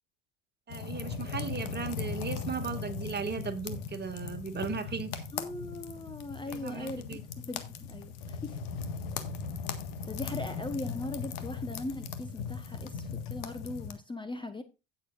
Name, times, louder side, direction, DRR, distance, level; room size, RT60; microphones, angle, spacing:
sound 1, 0.7-13.9, left 6 dB, 70° left, 1.7 m, -38 dB
voice 1, 0.7-5.2 6.5-7.2, right 5 dB, 25° right, 2.0 m, -36 dB
voice 2, 5.3-7.0 7.4-8.6 10.1-14.6, left 2 dB, 15° left, 1.0 m, -39 dB
16.5 x 7.4 x 2.5 m
hypercardioid pair, 70°, 37 cm